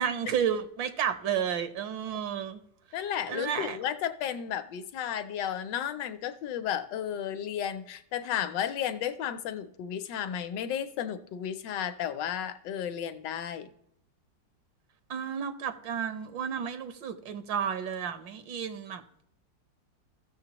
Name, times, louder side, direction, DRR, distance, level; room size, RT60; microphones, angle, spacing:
voice 1, 0.0-2.6 3.3-3.8 15.1-19.0, right 8 dB, 80° right, 10 dB, 1.6 m, -32 dB
voice 2, 2.9-13.7, left 9 dB, 75° left, 10 dB, 1.4 m, -33 dB
16.0 x 6.7 x 2.9 m, 0.75 s
omnidirectional pair, 2.0 m